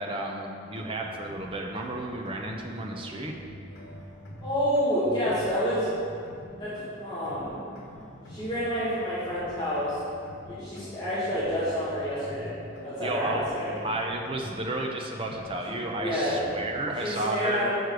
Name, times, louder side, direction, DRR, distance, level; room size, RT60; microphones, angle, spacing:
voice 1, 0.0-3.4 13.0-13.4 13.8-17.7, right 2 dB, 25° right, 1 dB, 0.8 m, -32 dB
sound 1, 0.6-17.1, equal, 85° left, 1.6 m, -45 dB
voice 2, 4.4-5.9 6.6-6.7 7.0-7.6 7.9-10.0 10.5-12.5 12.8-13.8 15.7-16.4 17.0-17.7, equal, 20° left, -12 dB, 1.8 m, -29 dB
6.7 x 6.4 x 6.3 m, 2.4 s
head